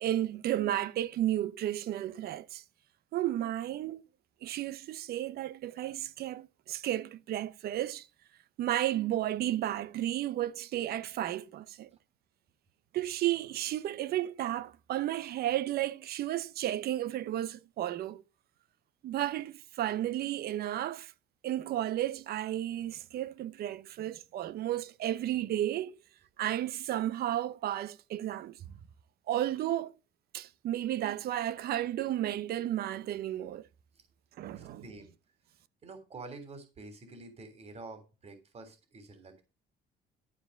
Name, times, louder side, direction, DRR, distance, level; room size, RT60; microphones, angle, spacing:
voice 1, 0.0-2.6 3.1-4.0 4.4-8.1 8.6-11.9 12.9-18.2 19.0-21.1 21.4-25.9 26.4-28.6 29.3-29.9 30.3-33.6 34.4-34.9, right 13 dB, 65° right, 0.9 m, -33 dB
voice 2, 34.5-35.1 35.8-39.4, right 3 dB, 40° right, 3.2 m, -48 dB
12.5 x 5.0 x 6.5 m
cardioid pair, 110°, 17 cm